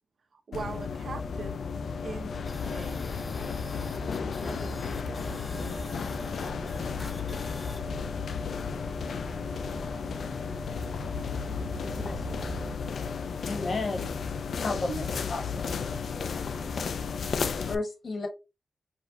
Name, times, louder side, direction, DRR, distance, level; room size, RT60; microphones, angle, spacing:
voice 1, 0.3-1.5 2.0-3.1 4.4-6.1, right 4 dB, 60° right, 0.9 m, -42 dB
sound 1, 0.5-17.7, left 5 dB, 70° left, 0.4 m, -33 dB
sound 2, 2.4-12.9, right 5 dB, 85° right, 0.4 m, -44 dB
sound 3, 2.5-7.8, left 2 dB, 35° left, 0.8 m, -47 dB
voice 2, 11.8-12.5 16.1-16.9, equal, 5° left, 0.4 m, -48 dB
voice 3, 13.4-14.1 14.6-15.8 17.7-18.3, left 3 dB, 55° left, 1.1 m, -32 dB
4.9 x 2.2 x 3.9 m
wide cardioid pair, 150°, 0 cm